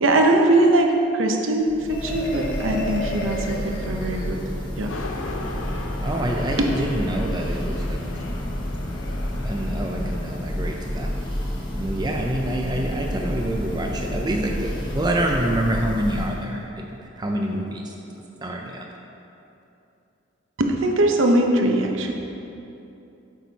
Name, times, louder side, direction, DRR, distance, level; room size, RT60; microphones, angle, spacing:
voice 1, 0.0-4.4 4.8-4.9 6.6-6.7 20.6-22.2, right 1 dB, 65° right, 3 dB, 0.7 m, -21 dB
Church bell, 1.6-16.6, equal, 20° left, 0.8 m, -30 dB
Marimba xylophone, 1.9-4.7, left 1 dB, 45° left, 1.3 m, -32 dB
sound 1, 4.9-10.2, left 2 dB, 80° left, 0.7 m, -36 dB
voice 2, 6.0-8.0 9.4-11.1 11.7-16.9 17.2-17.8 18.4-18.8, right 1 dB, 20° right, 1 dB, 0.4 m, -26 dB
8.2 x 6.2 x 4.0 m, 2.8 s
head